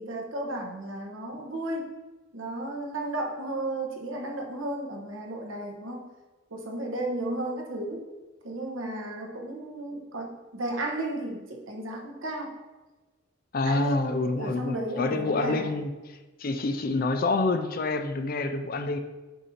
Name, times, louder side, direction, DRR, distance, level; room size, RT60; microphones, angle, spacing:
voice 1, 0.0-1.9 2.3-6.1 6.5-8.1 8.4-12.5 13.6-15.8, right 1 dB, 80° right, 0 dB, 1.1 m, -34 dB
voice 2, 13.5-15.9 16.4-19.0, left 3 dB, 45° left, 8 dB, 0.5 m, -27 dB
8.1 x 2.7 x 5.7 m, 1.2 s
head